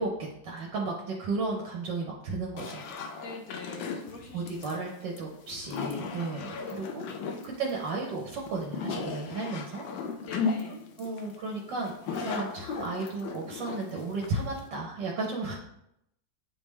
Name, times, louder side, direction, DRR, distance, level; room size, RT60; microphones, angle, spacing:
voice 1, 0.0-2.9 4.3-7.0 7.4-9.8 11.0-15.6, right 3 dB, 70° right, -1 dB, 1.5 m, -34 dB
sound 1, 2.6-14.7, left 5 dB, 75° left, 1.4 m, -36 dB
voice 2, 3.2-4.6 6.9-7.0 10.2-10.8, left 3 dB, 55° left, 1 dB, 1.2 m, -44 dB
9.4 x 3.5 x 3.2 m, 0.80 s
omnidirectional pair, 2.1 m